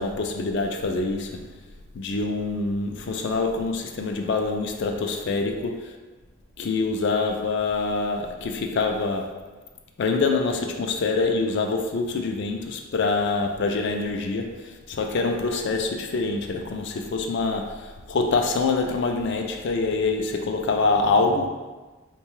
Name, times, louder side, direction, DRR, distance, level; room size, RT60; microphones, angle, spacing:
voice 1, 0.0-1.4 1.9-5.9 6.6-9.3 10.0-21.5, left 3 dB, 60° left, 3 dB, 0.4 m, -25 dB
3.7 x 2.2 x 3.1 m, 1.2 s
head